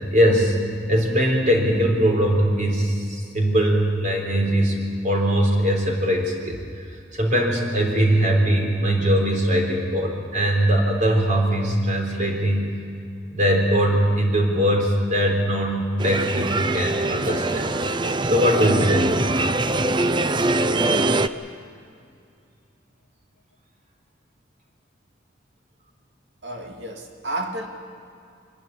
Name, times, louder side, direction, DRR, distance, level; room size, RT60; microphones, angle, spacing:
voice 1, 0.1-0.6 0.9-6.6 7.1-12.8 13.3-17.7 18.3-19.3, equal, 45° right, 1 dB, 3.8 m, -21 dB
sound 1, 16.0-21.3, right 2 dB, 25° right, 0.5 m, -23 dB
voice 2, 26.4-27.7, right 2 dB, 70° right, 2 dB, 2.5 m, -31 dB
25.0 x 12.5 x 10.0 m, 2.4 s
head